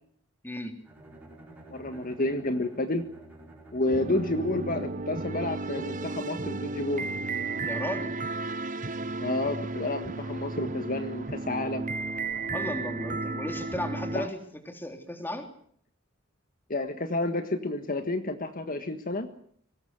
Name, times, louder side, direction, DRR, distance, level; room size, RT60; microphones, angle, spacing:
voice 1, 0.4-0.8 7.6-8.1 12.5-14.4 14.7-15.5, left 1 dB, 10° left, 5 dB, 3.7 m, -35 dB
Bowed string instrument, 0.8-5.2, right 1 dB, 10° right, 7.1 m, -49 dB
voice 2, 1.7-3.0 3.7-7.1 9.2-11.8 14.1-14.3 16.7-19.3, left 2 dB, 45° left, 7 dB, 1.7 m, -30 dB
sound 1, 3.8-14.3, right 3 dB, 40° right, 1.0 m, -34 dB
24.5 x 19.0 x 8.2 m, 0.62 s
head